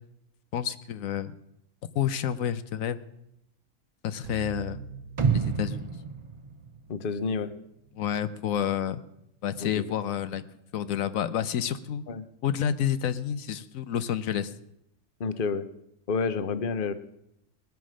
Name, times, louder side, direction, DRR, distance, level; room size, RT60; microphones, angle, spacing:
voice 1, 0.5-1.3 1.9-3.0 4.0-4.8 5.3-5.9 7.9-9.0 9.4-10.4 10.7-12.0 12.4-14.5, left 9 dB, 85° left, 13 dB, 1.2 m, -29 dB
sound 1, 4.2-8.6, right 8 dB, 70° right, 1.1 m, -46 dB
sound 2, 5.2-7.3 7.7-7.8, right 6 dB, 35° right, 0.5 m, -29 dB
voice 2, 6.9-7.5 9.6-9.8 12.1-12.3 15.2-15.7 16.1-16.9, left 4 dB, 45° left, 12 dB, 0.9 m, -29 dB
19.5 x 9.2 x 6.3 m, 0.80 s
omnidirectional pair, 1.4 m